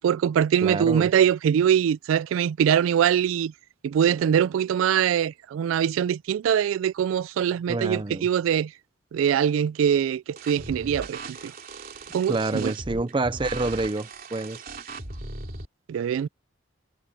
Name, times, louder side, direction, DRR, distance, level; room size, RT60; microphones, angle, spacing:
voice 1, 0.0-3.5 3.8-8.7 9.1-11.5 12.1-12.7 15.9-16.3, right 8 dB, 90° right, 0.3 m, -23 dB
voice 2, 0.6-1.1 7.7-8.3 12.3-14.6, right 2 dB, 25° right, 0.5 m, -27 dB
sound 1, 10.4-15.7, right 3 dB, 45° right, 3.2 m, -38 dB
head